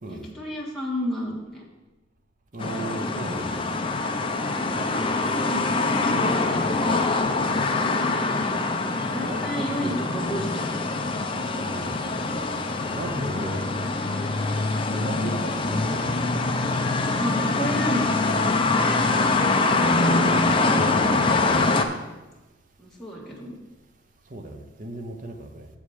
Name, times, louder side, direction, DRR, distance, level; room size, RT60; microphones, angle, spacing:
voice 1, 0.1-1.6 4.6-4.8 5.1-5.7 6.0-6.9 9.0-10.9 11.2-11.4 13.2-13.6 17.2-18.0 22.8-23.5, equal, ahead, -5 dB, 1.7 m, -32 dB
voice 2, 2.5-3.7 9.0-9.9 11.6-12.0 12.9-13.6 14.9-16.2 19.7-21.6 24.3-25.7, right 1 dB, 45° right, 5 dB, 0.9 m, -36 dB
sound 1, 2.6-21.8, left 3 dB, 30° left, 0.6 m, -24 dB
7.3 x 4.8 x 7.1 m, 1.1 s
head